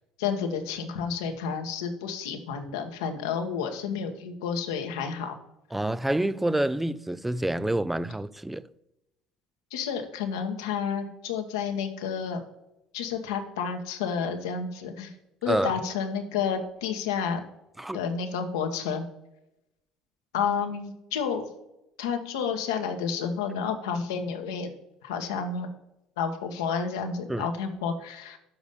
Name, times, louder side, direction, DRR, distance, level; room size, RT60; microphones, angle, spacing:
voice 1, 0.2-5.4 9.7-12.4 12.9-15.1 15.4-17.4 17.9-19.0 20.3-21.5 22.0-24.7 25.0-25.7 26.2-28.4, left 6 dB, 85° left, 1.1 m, -30 dB
voice 2, 5.7-8.7 15.5-15.8 17.8-18.0 27.3-27.5, right 1 dB, 5° right, 0.4 m, -28 dB
7.1 x 5.1 x 6.8 m
hypercardioid pair, 70°, 2 cm